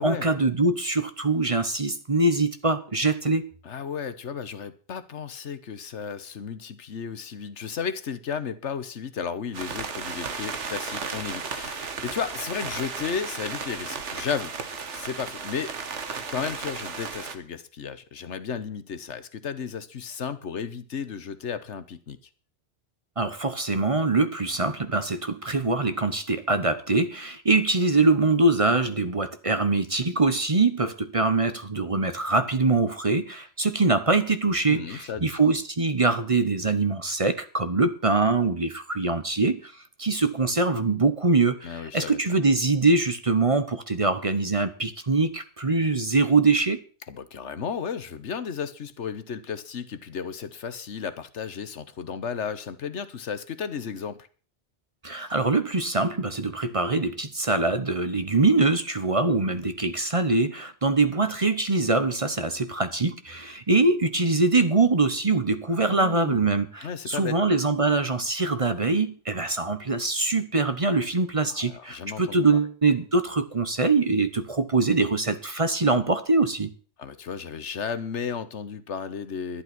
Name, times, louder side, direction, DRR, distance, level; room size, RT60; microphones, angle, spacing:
voice 1, 0.0-3.4 23.2-46.8 55.0-76.7, right 3 dB, 30° right, 0.9 m, -23 dB
voice 2, 3.6-14.5 14.9-15.7 16.3-22.2 34.7-35.4 41.6-42.2 47.1-54.3 65.9-66.4 66.8-67.4 71.5-72.4 77.0-79.6, left 6 dB, 80° left, 1.4 m, -34 dB
sound 1, 9.5-17.3, right 5 dB, 85° right, 1.7 m, -34 dB
11.5 x 11.0 x 6.0 m
omnidirectional pair, 1.2 m